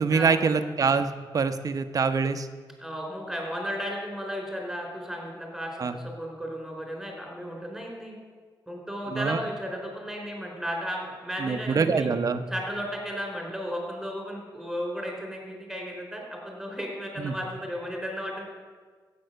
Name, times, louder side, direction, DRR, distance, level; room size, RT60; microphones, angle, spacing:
voice 1, 0.0-2.5 5.8-5.9 9.1-9.4 11.4-12.4 17.2-17.3, right 5 dB, 45° right, 9 dB, 0.8 m, -25 dB
voice 2, 2.8-8.2 8.7-12.1 12.5-18.5, equal, ahead, 0 dB, 4.1 m, -34 dB
14.5 x 8.5 x 6.8 m, 1.5 s
wide cardioid pair, 125°, 8 cm